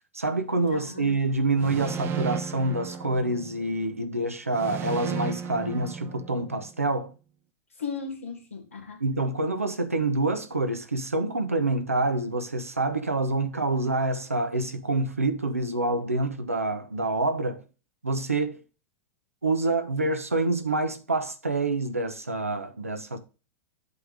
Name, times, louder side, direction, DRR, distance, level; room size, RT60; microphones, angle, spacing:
voice 1, 0.1-7.1 9.0-17.6 18.0-18.6 19.4-23.2, right 2 dB, 85° right, 1.0 m, -27 dB
voice 2, 0.7-1.2 7.8-9.0, left 5 dB, 75° left, 2.5 m, -36 dB
sound 1, 1.6-3.8 4.5-6.7, right 7 dB, 30° right, 0.9 m, -34 dB
8.2 x 3.6 x 5.1 m
figure-of-eight pair, 90°, 7 cm